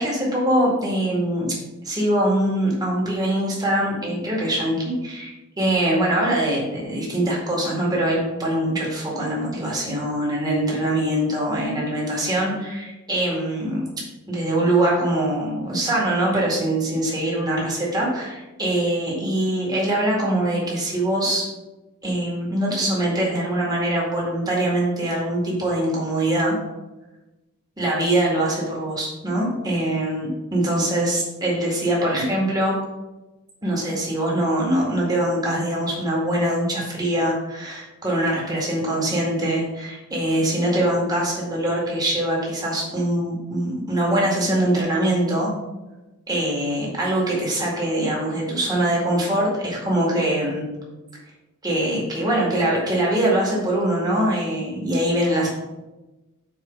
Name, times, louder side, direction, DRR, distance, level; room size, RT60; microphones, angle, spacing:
voice 1, 0.0-1.5 1.8-13.9 14.3-21.5 22.0-26.6 27.8-32.8 33.6-45.5 46.3-50.6 51.6-55.5, right 1 dB, 20° right, -4 dB, 2.2 m, -23 dB
6.5 x 4.6 x 6.0 m, 1.1 s
head